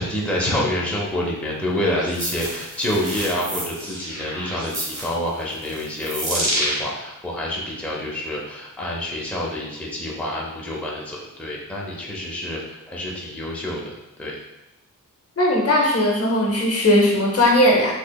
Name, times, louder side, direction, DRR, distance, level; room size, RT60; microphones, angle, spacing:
voice 1, 0.0-14.4, left 1 dB, 5° left, -4 dB, 0.6 m, -27 dB
sound 1, 1.8-6.8, right 1 dB, 65° right, 1.5 m, -28 dB
voice 2, 15.4-17.9, left 1 dB, 45° left, -1 dB, 0.6 m, -18 dB
3.6 x 3.2 x 2.2 m, 0.98 s
wide cardioid pair, 115°, 33 cm